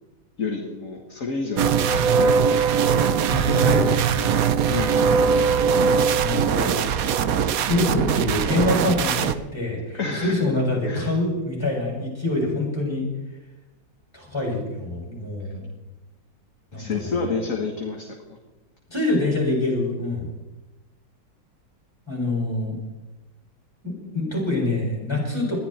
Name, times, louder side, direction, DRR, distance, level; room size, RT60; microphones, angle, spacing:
voice 1, 0.4-2.7 3.2-3.7 4.7-5.7 9.9-10.5 10.8-11.1 16.7-18.4, left 4 dB, 45° left, 1 dB, 2.1 m, -30 dB
sound 1, 1.6-9.3, right 6 dB, 60° right, 1.0 m, -20 dB
voice 2, 3.3-4.3 6.1-6.8 7.5-13.0 14.1-15.7 16.7-17.1 18.9-20.3 22.1-22.8 23.8-25.6, left 2 dB, 15° left, -3 dB, 7.0 m, -25 dB
20.5 x 13.0 x 4.5 m, 1.1 s
omnidirectional pair, 2.0 m